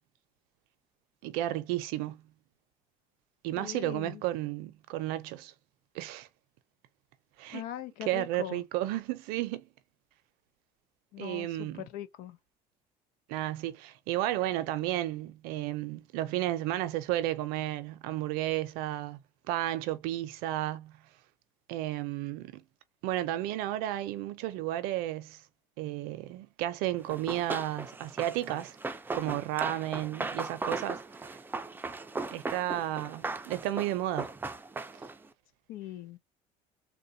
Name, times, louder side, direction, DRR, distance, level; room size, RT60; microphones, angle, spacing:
voice 1, 1.2-2.2 3.4-5.5 5.9-6.3 7.4-7.6 8.0-9.7 11.2-11.9 13.3-19.2 19.5-21.0 21.7-22.6 23.0-25.4 25.8-28.8 29.1-31.4 32.3-34.3, right 14 dB, 85° right, 0.6 m, -33 dB
voice 2, 3.6-4.2 7.5-8.6 11.1-12.4 35.7-36.2, left 12 dB, 80° left, 0.6 m, -41 dB
Run, 27.1-35.3, right 3 dB, 15° right, 0.4 m, -38 dB
3.7 x 2.2 x 2.7 m
cardioid pair, 105°, 15 cm